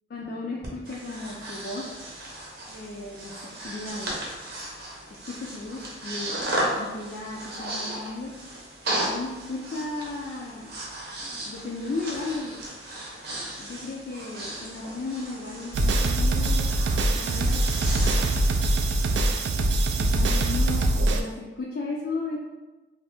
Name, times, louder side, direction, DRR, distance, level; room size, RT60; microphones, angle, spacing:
voice 1, 0.1-1.9 2.7-4.2 5.1-6.4 6.8-8.3 9.1-10.7 11.4-12.6 13.6-16.7 17.1-18.1 20.0-22.4, left 3 dB, 55° left, -3 dB, 0.3 m, -35 dB
Breathing, 0.6-19.3, right 1 dB, 60° right, 0.8 m, -35 dB
sound 1, 15.7-21.2, right 1 dB, 85° right, 0.3 m, -23 dB
2.7 x 2.5 x 3.4 m, 1.2 s
head